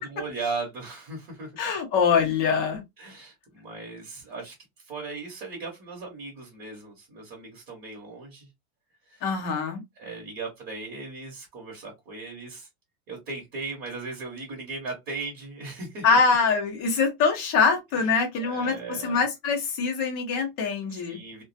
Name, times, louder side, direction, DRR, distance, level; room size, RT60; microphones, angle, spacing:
voice 1, 0.1-1.5 3.0-8.5 9.1-9.2 10.0-12.7 13.1-16.2 17.9-19.2 20.9-21.4, right 3 dB, 25° right, 0.9 m, -37 dB
voice 2, 1.6-2.8 9.2-9.8 16.0-18.7 19.0-21.2, left 5 dB, 25° left, 0.5 m, -23 dB
2.3 x 2.1 x 2.6 m
supercardioid pair, 170°, 44 cm